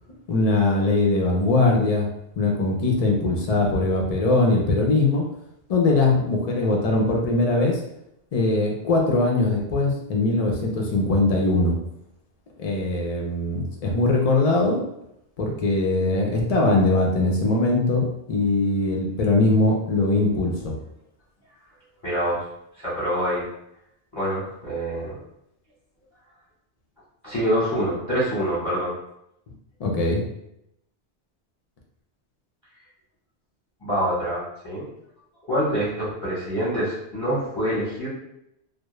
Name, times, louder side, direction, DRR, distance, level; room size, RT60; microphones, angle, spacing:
voice 1, 0.3-2.1 2.4-5.2 5.7-7.8 8.3-11.8 12.6-14.8 15.4-20.8 29.8-30.2, left 2 dB, 55° left, -1 dB, 0.4 m, -21 dB
voice 2, 22.0-22.4 22.8-23.4 24.1-25.1 27.2-28.9 33.8-34.9 35.5-38.1, equal, 25° left, -11 dB, 0.9 m, -25 dB
2.2 x 2.0 x 3.0 m, 0.79 s
omnidirectional pair, 1.2 m